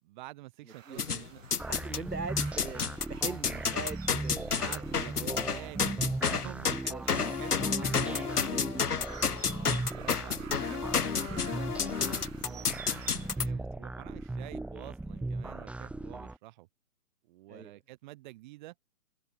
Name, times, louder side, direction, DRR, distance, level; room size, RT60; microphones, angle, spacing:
voice 1, 0.0-1.4 4.4-8.5 9.5-12.8 13.2-16.7 17.2-18.7, right 18 dB, 30° right, 3.9 m, -48 dB
sound 1, 0.7-13.5, right 8 dB, 55° right, 6.2 m, -51 dB
voice 2, 0.9-1.3 1.7-2.8 3.1-5.4 6.7-7.0 8.4-9.1 13.6-13.7 17.5-17.8, right 4 dB, 90° right, 7.4 m, -42 dB
sound 2, 1.0-2.0 2.4-13.5, left 6 dB, 75° left, 2.6 m, -31 dB
sound 3, 1.6-16.4, right 2 dB, 5° right, 3.0 m, -38 dB
open air
hypercardioid pair, 145°, 46 cm